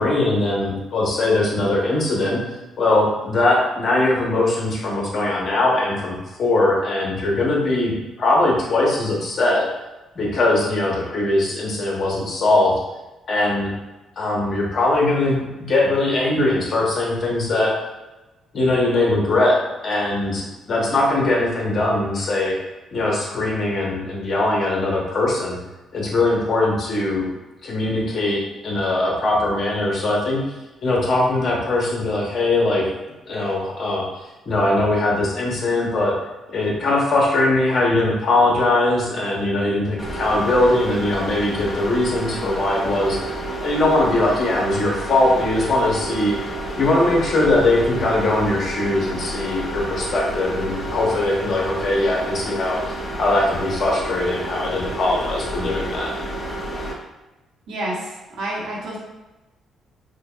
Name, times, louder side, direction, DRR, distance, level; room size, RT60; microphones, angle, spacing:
voice 1, 0.0-2.4 2.8-9.7 10.2-12.8 13.3-13.7 14.2-17.7 18.5-19.6 19.8-22.6 22.9-25.6 25.9-27.3 27.6-30.4 30.8-32.9 33.3-34.1 34.5-36.1 36.5-43.2 43.6-46.3 46.8-52.8 53.2-56.1, left 2 dB, 50° left, -3 dB, 1.0 m, -20 dB
sound 1, 40.0-56.9, right 1 dB, 15° left, 1.1 m, -30 dB
voice 2, 57.7-59.0, right 1 dB, 80° right, -5 dB, 1.2 m, -29 dB
4.9 x 2.2 x 2.4 m, 1.1 s
cardioid pair, 90°, 0 cm